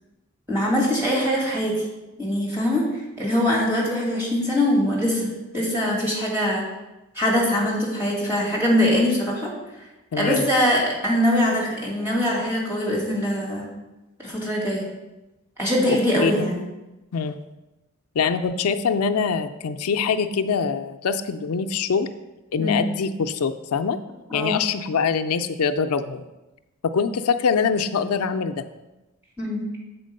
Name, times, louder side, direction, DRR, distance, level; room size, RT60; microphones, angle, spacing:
voice 1, 0.5-1.8 2.2-2.9 3.2-5.3 5.5-6.7 7.1-9.5 10.2-13.7 14.2-14.9 15.6-16.6 22.6-22.8 24.3-24.6 29.4-29.7, left 1 dB, 10° right, -5 dB, 2.3 m, -22 dB
voice 2, 10.1-10.5 16.2-16.3 17.1-17.4 18.2-22.1 22.5-24.0 24.3-26.2 26.8-28.6, left 5 dB, 85° left, 8 dB, 0.4 m, -24 dB
7.4 x 4.4 x 6.5 m, 1.0 s
head